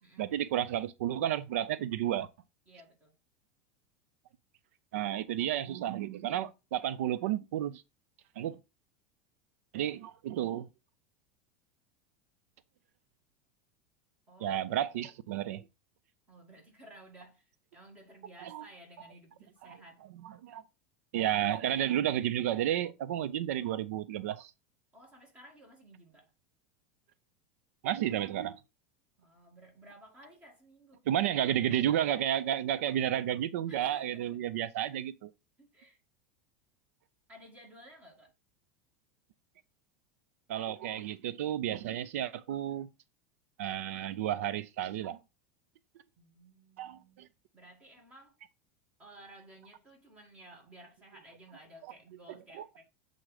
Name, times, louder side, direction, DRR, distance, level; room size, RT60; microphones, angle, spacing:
voice 1, 0.2-2.3 4.9-7.8 8.4-8.6 9.7-10.7 14.4-15.6 18.4-18.6 20.2-20.6 21.1-24.5 27.8-28.6 31.1-35.3 40.5-42.9 43.6-45.2 46.8-47.3 52.5-52.7, right 11 dB, 80° right, 0.5 m, -32 dB
voice 2, 2.7-3.1 14.3-14.6 16.3-20.0 21.2-21.4 21.7-21.8 24.9-26.3 29.2-31.1 33.7-34.4 34.8-34.9 35.6-36.0 37.3-38.3 46.2-47.3 47.5-48.4 49.0-52.8, right 1 dB, 15° right, 1.9 m, -55 dB
7.5 x 3.8 x 4.8 m
supercardioid pair, 180°, 8 cm